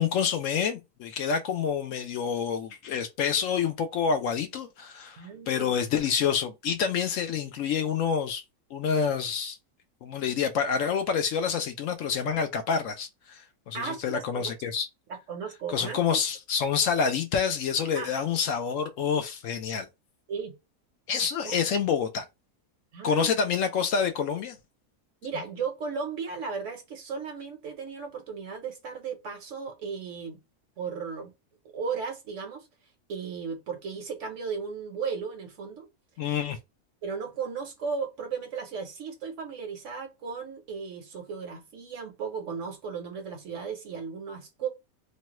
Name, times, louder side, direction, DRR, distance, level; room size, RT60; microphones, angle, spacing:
voice 1, 0.0-8.4 8.7-9.6 10.0-14.9 15.7-19.9 21.1-22.2 23.0-24.6 36.2-36.6, left 6 dB, 70° left, 0.9 m, -27 dB
voice 2, 5.2-5.7 13.7-14.5 15.1-16.2 17.9-18.1 20.3-20.5 21.4-21.6 22.9-23.3 25.2-30.4 30.8-31.3 31.7-32.7 33.1-35.9 37.0-44.7, right 5 dB, 60° right, 1.1 m, -35 dB
3.1 x 2.2 x 2.9 m
omnidirectional pair, 1.5 m